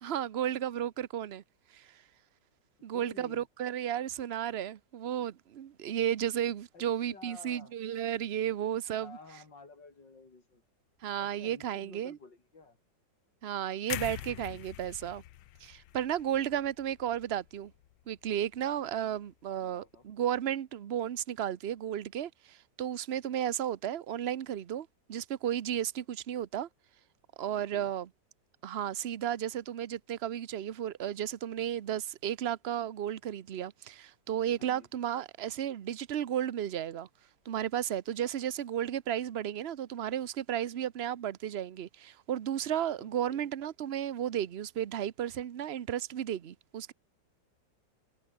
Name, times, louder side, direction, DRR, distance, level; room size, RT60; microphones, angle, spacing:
voice 1, 0.0-1.4 1.7-1.9 2.8-9.2 11.0-12.2 13.4-15.2 15.6-17.7 18.1-26.7 27.4-28.1 28.6-37.1 37.5-46.9, right 10 dB, 55° right, 0.7 m, -33 dB
voice 2, 2.9-3.5 6.7-7.7 9.0-10.6 11.2-12.8 14.1-14.6 19.6-20.1 27.5-27.9 34.6-34.9 43.0-43.5, left 3 dB, 70° left, 5.3 m, -53 dB
sound 1, 13.9-17.9 18.3-18.5, left 15 dB, 90° left, 1.5 m, -43 dB
omnidirectional pair, 2.0 m